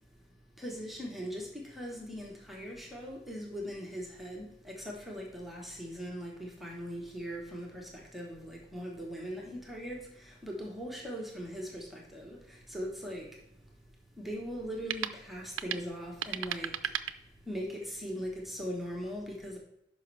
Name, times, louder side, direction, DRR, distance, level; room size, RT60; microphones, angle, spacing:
voice 1, 0.6-13.4 14.2-16.9 17.5-19.6, equal, ahead, 1.1 m, -40 dB
sound 1, 12.4-17.8, right 10 dB, 80° right, 0.5 m, -39 dB
11.5 x 5.1 x 3.3 m
head